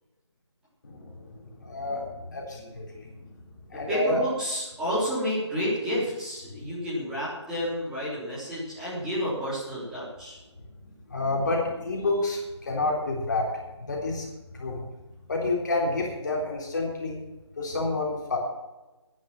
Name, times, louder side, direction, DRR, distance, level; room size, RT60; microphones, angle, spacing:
voice 1, 0.8-3.2 3.7-4.2 10.8-13.5 13.8-14.3 14.5-14.8 15.3-17.2 17.6-18.4, left 2 dB, 40° left, -2 dB, 3.6 m, -29 dB
voice 2, 3.7-10.4, equal, 5° right, -10 dB, 3.6 m, -30 dB
11.0 x 10.5 x 7.1 m, 1.1 s
figure-of-eight pair, 160°, 15 cm